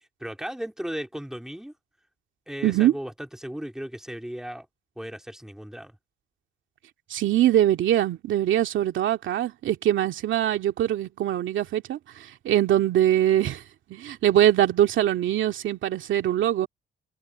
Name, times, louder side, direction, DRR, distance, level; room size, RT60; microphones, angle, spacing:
voice 1, 0.2-1.7 2.5-4.7 5.0-5.9, equal, 5° right, 3.2 m, -36 dB
voice 2, 2.6-2.9 7.1-13.6 13.9-16.7, right 12 dB, 75° right, 2.2 m, -23 dB
cardioid pair, 90°, 20 cm